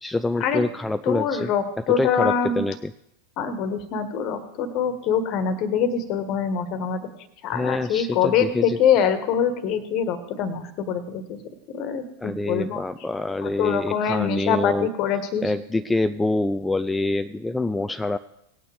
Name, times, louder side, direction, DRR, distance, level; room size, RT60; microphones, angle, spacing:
voice 1, 0.0-1.5 1.9-2.9 7.5-8.8 12.2-14.9 15.4-18.2, left 2 dB, 5° left, 10 dB, 0.3 m, -26 dB
voice 2, 1.0-2.6 3.4-7.0 7.4-11.4 11.7-12.8 13.4-15.5, left 7 dB, 40° left, 11 dB, 1.4 m, -24 dB
18.5 x 9.1 x 3.4 m, 0.79 s
figure-of-eight pair, 90°, 0 cm